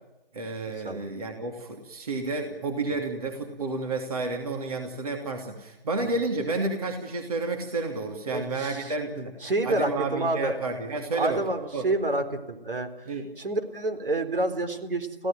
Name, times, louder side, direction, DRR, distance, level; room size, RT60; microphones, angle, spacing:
voice 1, 0.3-9.3 9.6-11.4 11.7-11.9 13.1-13.3, right 3 dB, 40° right, 3 dB, 3.0 m, -31 dB
voice 2, 8.3-8.9 9.4-10.6 11.1-13.1 13.4-15.3, right 2 dB, 65° right, 7 dB, 4.1 m, -28 dB
26.5 x 16.5 x 9.0 m, 1.0 s
figure-of-eight pair, 165°, 29 cm